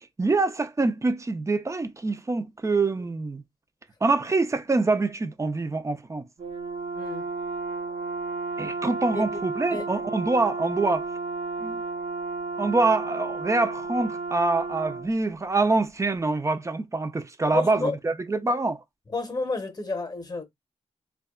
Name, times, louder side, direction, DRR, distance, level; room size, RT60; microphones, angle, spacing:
voice 1, 0.2-3.4 4.0-6.3 8.6-11.1 11.6-11.8 12.6-18.8, right 3 dB, 25° right, 0.5 m, -25 dB
Brass instrument, 6.4-15.1, right 3 dB, 60° right, 0.8 m, -32 dB
voice 2, 7.0-7.3 9.1-9.2 9.7-9.8 17.5-18.0 19.1-20.4, left 3 dB, 30° left, 0.8 m, -30 dB
2.6 x 2.3 x 2.3 m
cardioid pair, 55°, 13 cm